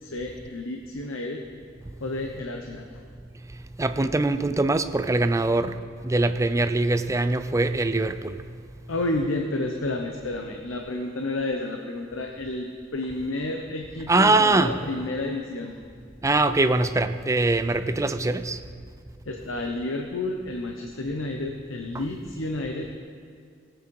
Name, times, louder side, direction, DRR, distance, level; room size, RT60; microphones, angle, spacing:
voice 1, 0.0-1.4 2.0-2.9 8.9-12.7 12.9-15.8 19.3-23.0, left 2 dB, 80° left, 2 dB, 0.9 m, -30 dB
voice 2, 3.8-5.8 6.0-8.4 14.1-14.8 16.2-18.6, right 2 dB, 15° right, 10 dB, 0.4 m, -22 dB
18.5 x 8.2 x 4.7 m, 2.2 s
head